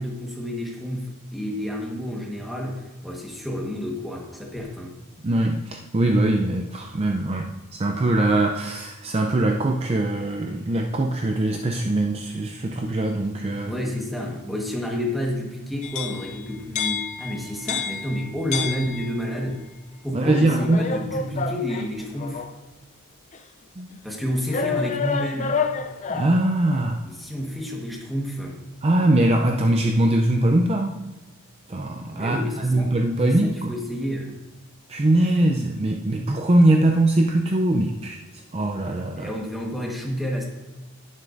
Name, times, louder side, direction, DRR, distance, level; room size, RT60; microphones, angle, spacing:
voice 1, 0.0-4.9 13.7-19.6 20.0-22.4 24.0-25.6 27.0-28.6 32.1-33.0 33.2-34.4 39.2-40.5, equal, ahead, -1 dB, 1.3 m, -30 dB
voice 2, 5.2-13.7 20.1-20.9 23.8-23.9 26.1-27.0 28.8-31.0 31.7-33.7 34.9-38.2 38.5-39.3, right 1 dB, 25° right, 3 dB, 0.4 m, -22 dB
sound 1, 15.8-19.5 20.3-22.6 23.3-23.4 24.5-26.4, left 5 dB, 30° left, 0.4 m, -29 dB
10.5 x 9.9 x 2.6 m, 1.1 s
head